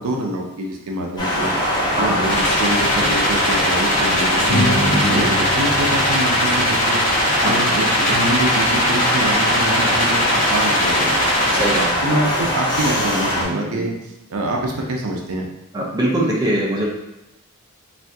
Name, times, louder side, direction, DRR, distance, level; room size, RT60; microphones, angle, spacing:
voice 1, 0.0-1.5 2.0-7.0 7.4-11.3 11.5-11.6 12.0-14.0 14.3-15.5, right 1 dB, 70° right, 0 dB, 0.5 m, -25 dB
sound 1, 1.2-13.4, equal, 20° left, 0.7 m, -21 dB
sound 2, 1.9-3.1 3.4-3.6 4.5-7.0, left 1 dB, 70° left, 0.8 m, -26 dB
sound 3, 2.2-12.0, left 1 dB, 35° left, 1.2 m, -22 dB
voice 2, 7.4-7.7 11.5-11.9 13.7-13.8 15.7-16.9, right 1 dB, 20° right, -3 dB, 0.5 m, -22 dB
2.6 x 2.4 x 3.4 m, 0.94 s
head